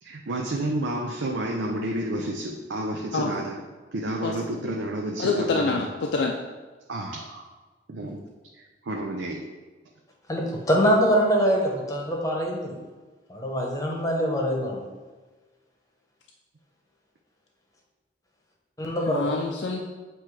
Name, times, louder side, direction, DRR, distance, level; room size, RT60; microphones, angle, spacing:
voice 1, 0.0-3.6 3.9-5.9 6.9-7.4 7.9-8.2 8.5-9.4, right 1 dB, 85° right, 0 dB, 0.6 m, -30 dB
voice 2, 5.2-6.4 19.1-19.8, left 3 dB, 75° left, 1 dB, 0.5 m, -26 dB
voice 3, 10.3-12.8 13.3-14.9 18.8-19.3, equal, 20° left, -1 dB, 1.0 m, -24 dB
7.9 x 3.0 x 4.7 m, 1.3 s
head